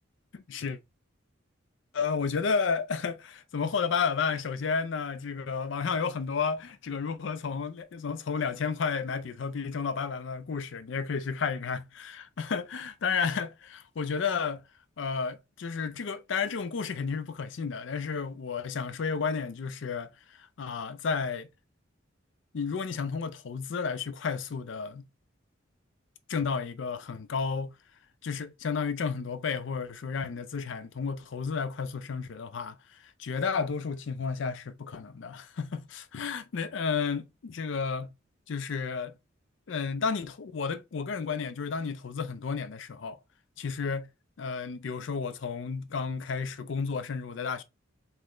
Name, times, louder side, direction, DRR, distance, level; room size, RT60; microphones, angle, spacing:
voice 1, 0.3-0.8 1.9-14.6 15.0-20.1 20.6-21.5 22.5-25.1 26.3-27.7 28.2-32.8 33.2-38.1 38.5-39.1 39.7-43.2 43.6-44.1 44.4-47.6, left 5 dB, 65° left, 0.4 m, -32 dB
5.4 x 2.1 x 3.7 m
head